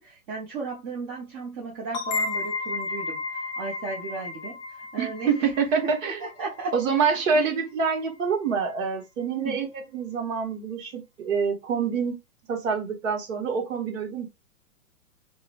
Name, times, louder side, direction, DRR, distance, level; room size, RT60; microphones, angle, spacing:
voice 1, 0.0-5.5 6.0-6.7 7.0-7.5 9.4-9.6, right 4 dB, 35° right, 0.8 m, -35 dB
sound 1, 1.9-7.4, left 3 dB, 30° left, 0.7 m, -33 dB
voice 2, 5.0-6.2 6.7-12.2 12.5-14.3, right 5 dB, 65° right, 1.1 m, -26 dB
2.9 x 2.1 x 2.5 m
hypercardioid pair, 125°, 43 cm